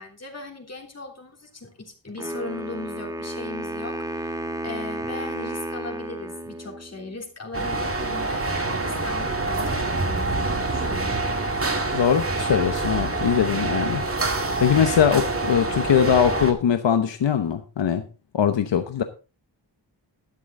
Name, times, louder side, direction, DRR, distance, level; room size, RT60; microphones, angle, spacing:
voice 1, 0.0-11.3, left 3 dB, 35° left, 2 dB, 3.4 m, -38 dB
Wind instrument woodwind instrument, 2.2-7.2, right 1 dB, 10° right, 1.2 m, -32 dB
sound 1, 7.5-16.5, right 2 dB, 30° right, 2.1 m, -26 dB
voice 2, 11.9-14.0 14.6-18.0 18.3-19.0, left 8 dB, 80° left, 8 dB, 1.0 m, -21 dB
12.5 x 11.0 x 3.7 m, 0.33 s
wide cardioid pair, 145°, 43 cm